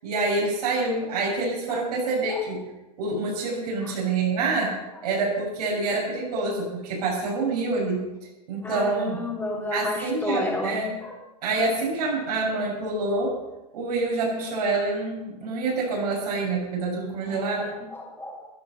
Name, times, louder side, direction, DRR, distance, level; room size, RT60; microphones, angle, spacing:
voice 1, 0.0-2.6 3.0-4.8 5.0-8.0 8.5-9.2 9.7-10.9 11.4-13.4 13.7-17.7, right 3 dB, 75° right, -4 dB, 6.6 m, -26 dB
voice 2, 8.6-11.2 14.6-14.8 17.3-18.5, left 2 dB, 10° left, -2 dB, 3.3 m, -32 dB
16.5 x 12.0 x 5.6 m, 1.0 s
hypercardioid pair, 115°, 20 cm